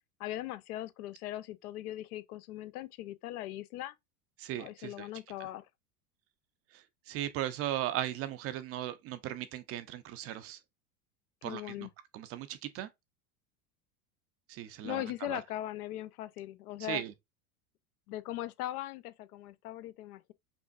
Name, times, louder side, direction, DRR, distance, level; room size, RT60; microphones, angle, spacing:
voice 1, 0.2-3.9 4.6-5.6 11.4-11.9 14.8-17.0 18.1-20.3, left 14 dB, 80° left, 0.5 m, -39 dB
voice 2, 4.4-5.1 5.4-5.5 6.7-10.6 11.4-11.9 12.1-12.9 14.5-15.4 16.8-17.1, right 12 dB, 35° right, 0.4 m, -37 dB
5.1 x 2.4 x 2.4 m
hypercardioid pair, 100°, 44 cm